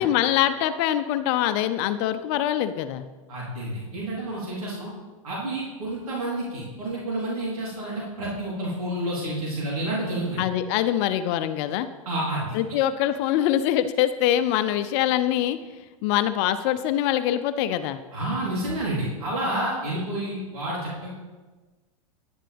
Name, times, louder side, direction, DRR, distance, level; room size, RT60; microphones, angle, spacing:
voice 1, 0.0-3.1 10.4-11.9 12.5-15.6 16.0-18.0, left 11 dB, 50° left, 11 dB, 0.6 m, -24 dB
voice 2, 3.3-4.9 5.2-10.4 12.1-12.6 18.1-21.1, right 1 dB, 80° right, -6 dB, 3.7 m, -29 dB
11.0 x 10.5 x 3.5 m, 1.3 s
hypercardioid pair, 105°, 18 cm